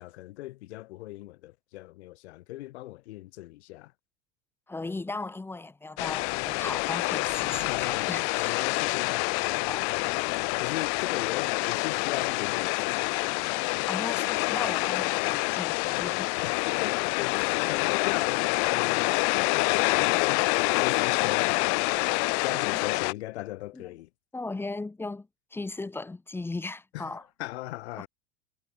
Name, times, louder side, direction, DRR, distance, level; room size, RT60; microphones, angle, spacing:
voice 1, 0.0-3.9 7.6-10.1 10.6-13.5 16.4-19.2 19.9-21.8 22.4-24.1 26.9-28.1, left 17 dB, 75° left, 2.3 m, -39 dB
voice 2, 4.7-8.7 9.7-9.9 13.9-16.4 21.2-21.4 22.5-22.6 23.7-23.8 24.3-27.2 28.0-28.1, left 3 dB, 5° left, 0.7 m, -37 dB
sound 1, 6.0-23.1, left 40 dB or more, 55° left, 0.8 m, -27 dB
hypercardioid pair, 115°, 33 cm